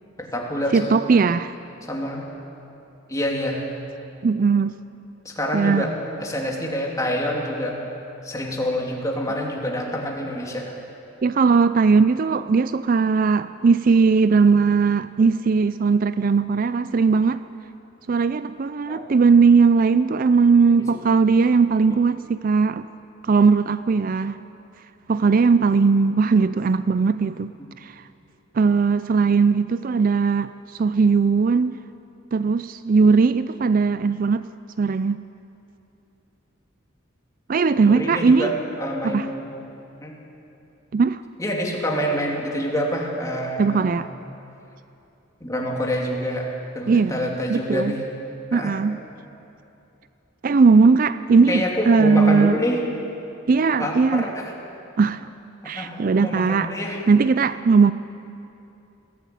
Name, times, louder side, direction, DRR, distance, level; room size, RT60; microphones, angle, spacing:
voice 1, 0.2-1.1 1.9-2.3 3.1-3.6 5.2-5.9 6.2-7.8 8.2-10.8 18.9-19.1 20.7-21.0 21.9-22.0 37.8-39.6 40.0-40.2 41.4-43.9 45.4-48.0 48.5-48.8 51.4-52.8 53.8-54.5 55.6-57.0, equal, 15° left, -1 dB, 2.9 m, -27 dB
voice 2, 0.7-1.6 4.2-4.7 5.5-5.9 11.2-17.4 18.1-22.8 23.2-24.4 25.1-27.5 27.8-28.0 28.5-30.5 30.8-31.8 32.3-34.4 34.8-35.2 37.5-38.5 39.0-39.3 40.9-41.2 43.6-44.1 46.9-47.9 48.5-49.0 50.4-52.6 53.5-54.2 55.0-55.3 55.6-56.7 57.1-57.9, right 5 dB, 45° right, 13 dB, 0.4 m, -18 dB
21.5 x 15.5 x 9.3 m, 2.8 s
head